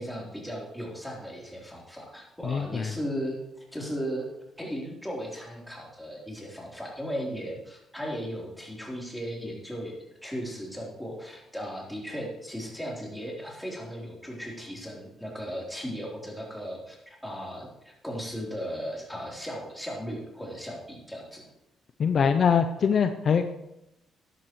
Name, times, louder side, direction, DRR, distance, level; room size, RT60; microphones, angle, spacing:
voice 1, 0.0-4.3 4.6-9.9 10.2-21.4, equal, 5° left, -3 dB, 3.7 m, -36 dB
voice 2, 2.4-2.9 22.0-23.5, left 6 dB, 55° left, 8 dB, 0.6 m, -23 dB
13.0 x 11.0 x 3.2 m, 0.88 s
cardioid pair, 90°, 0 cm